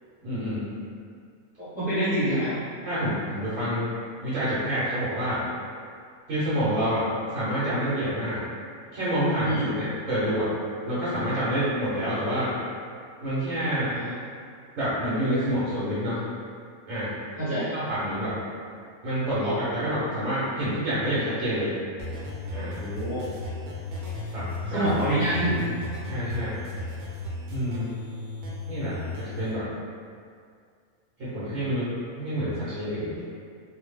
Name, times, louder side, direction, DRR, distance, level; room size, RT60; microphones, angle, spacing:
voice 1, 0.2-0.7 2.8-3.9 4.2-5.4 6.3-8.4 8.9-10.5 10.9-12.5 13.2-13.9 14.8-16.2 16.9-17.1 17.7-18.3 19.0-21.8 22.5-22.8 24.3-24.9 26.0-26.6 27.5-27.9 28.7-29.7 31.2-33.1, equal, 65° right, -13 dB, 1.3 m, -28 dB
voice 2, 1.6-2.6 9.4-9.8 13.9-14.2 17.4-17.7 22.8-23.3 24.7-25.8, right 1 dB, 10° right, -13 dB, 0.6 m, -27 dB
sound 1, 22.0-29.5, left 2 dB, 85° right, 1.1 m, -35 dB
2.9 x 2.1 x 3.2 m, 2.2 s
omnidirectional pair, 1.5 m